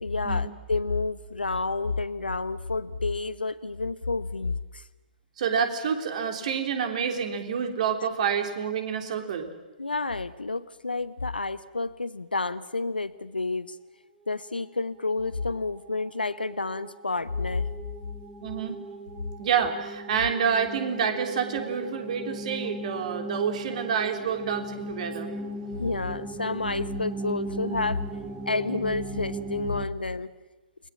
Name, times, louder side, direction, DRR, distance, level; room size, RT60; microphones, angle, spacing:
voice 1, 0.0-4.8 9.8-13.8 14.3-17.7 25.8-28.0 28.4-30.3, left 3 dB, 80° left, 14 dB, 1.1 m, -29 dB
voice 2, 5.4-9.5 18.4-18.8 19.4-25.3, right 7 dB, 45° right, 5 dB, 3.4 m, -28 dB
sound 1, 14.2-29.9, right 2 dB, 15° right, 1.8 m, -38 dB
29.5 x 21.0 x 7.4 m, 1.1 s
figure-of-eight pair, 120°, 5 cm